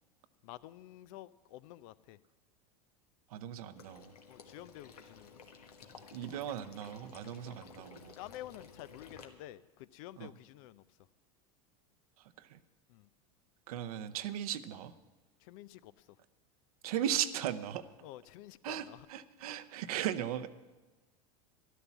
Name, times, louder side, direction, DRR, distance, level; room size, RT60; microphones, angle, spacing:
voice 1, 0.4-2.2 4.3-5.4 7.5-7.6 8.2-10.8 12.9-13.1 15.4-16.1 18.0-19.1, left 14 dB, 65° left, 16 dB, 0.6 m, -50 dB
voice 2, 3.3-4.1 6.1-8.1 10.2-10.3 12.4-12.6 13.7-14.9 16.8-17.8 18.6-20.5, right 10 dB, 75° right, 12 dB, 0.8 m, -37 dB
Water / Liquid, 3.8-9.2, left 5 dB, 85° left, 1.4 m, -54 dB
12.5 x 11.5 x 7.2 m, 1.2 s
hypercardioid pair, 90°, 19 cm